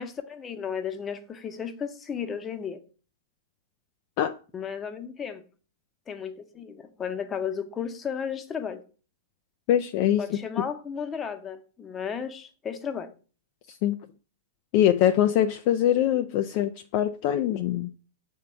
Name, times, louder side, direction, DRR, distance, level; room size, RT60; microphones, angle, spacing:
voice 1, 0.0-2.8 4.5-5.4 6.1-8.8 10.2-13.1, left 7 dB, 20° left, 0.7 m, -34 dB
voice 2, 9.7-10.4 13.7-14.0 14.7-17.9, left 11 dB, 45° left, 0.3 m, -23 dB
7.4 x 3.6 x 4.3 m
figure-of-eight pair, 100°, 0 cm